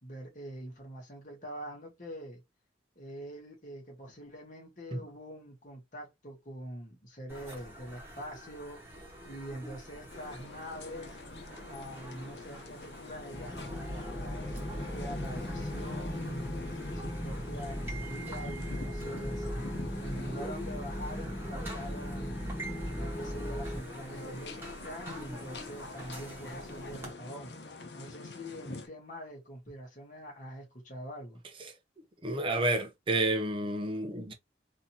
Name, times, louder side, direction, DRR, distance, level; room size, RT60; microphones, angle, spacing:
voice 1, 0.0-2.4 2.9-8.8 9.2-11.2 11.7-19.5 20.0-22.5 23.0-27.5 27.9-31.4, equal, 45° left, 1.7 m, -44 dB
sound 1, 7.3-27.1, right 1 dB, 15° right, 1.3 m, -47 dB
sound 2, 10.1-28.9, left 3 dB, 70° left, 0.8 m, -45 dB
sound 3, 13.3-23.8, equal, 20° left, 1.0 m, -38 dB
voice 2, 32.2-34.3, right 2 dB, 30° right, 0.7 m, -30 dB
4.0 x 2.8 x 2.8 m
head